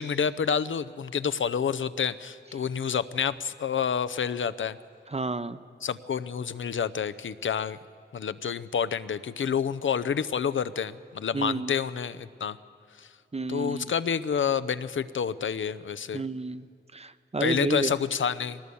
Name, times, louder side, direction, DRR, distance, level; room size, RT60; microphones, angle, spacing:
voice 1, 0.0-4.8 5.8-7.8 8.1-12.6 13.0-13.1 13.5-16.2 17.4-18.6, left 7 dB, 75° left, 15 dB, 0.7 m, -28 dB
voice 2, 5.1-5.6 11.3-11.7 13.3-13.9 16.1-16.6 16.9-17.9, right 3 dB, 30° right, 12 dB, 0.9 m, -30 dB
21.5 x 19.0 x 7.0 m, 2.2 s
cardioid pair, 50°, 20 cm